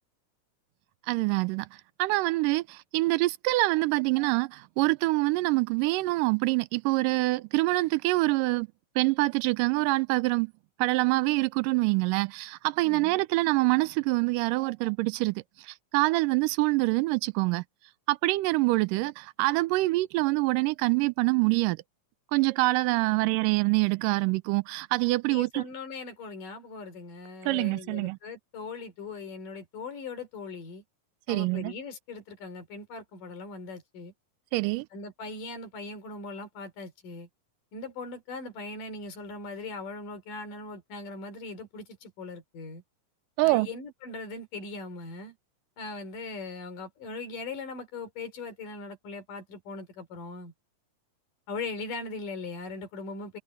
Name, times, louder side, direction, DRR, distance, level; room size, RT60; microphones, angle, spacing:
voice 1, 1.1-1.7 2.0-8.7 9.0-10.5 10.8-17.6 18.1-21.8 22.3-25.6 27.5-28.2 31.3-31.7 34.5-34.9 43.4-43.7, right 22 dB, 85° right, 2.2 m, -25 dB
voice 2, 12.8-13.2 23.1-23.3 25.3-30.8 31.3-34.1 34.9-37.3 37.7-42.8 43.4-45.4 45.8-50.5 51.5-53.4, left 3 dB, 75° left, 5.3 m, -40 dB
omnidirectional pair, 3.8 m